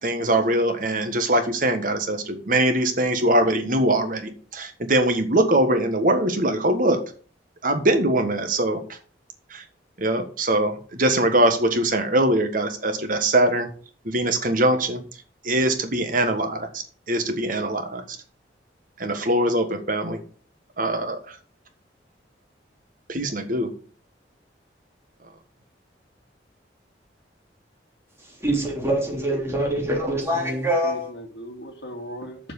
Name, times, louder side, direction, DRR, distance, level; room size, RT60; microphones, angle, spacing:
voice 1, 0.0-7.0 7.6-9.0 9.5-9.6 10.0-13.7 14.0-15.0 15.4-18.2 19.0-20.2 20.8-21.4 23.1-23.7, right 1 dB, 50° right, 1.5 m, -22 dB
voice 2, 28.4-31.1, right 1 dB, 15° right, 3.3 m, -24 dB
voice 3, 30.3-32.4, equal, 65° left, 2.3 m, -38 dB
7.3 x 6.0 x 6.9 m
head